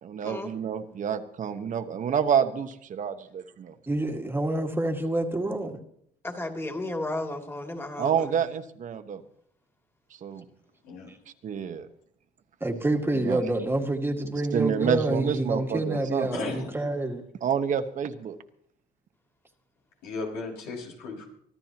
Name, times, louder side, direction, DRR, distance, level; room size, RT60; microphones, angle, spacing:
voice 1, 0.0-3.1 8.0-9.2 10.2-10.4 11.4-11.9 13.2-13.4 14.5-16.3 17.4-18.4, right 8 dB, 50° right, 7 dB, 1.3 m, -28 dB
voice 2, 3.9-5.8 11.1-11.2 12.6-17.3, right 2 dB, 15° right, 2 dB, 2.0 m, -27 dB
voice 3, 6.2-8.4, left 1 dB, 15° left, 3 dB, 2.8 m, -34 dB
voice 4, 16.3-16.7 20.0-21.3, left 3 dB, 90° left, -1 dB, 5.8 m, -35 dB
24.5 x 13.5 x 3.0 m, 0.69 s
cardioid pair, 110°, 17 cm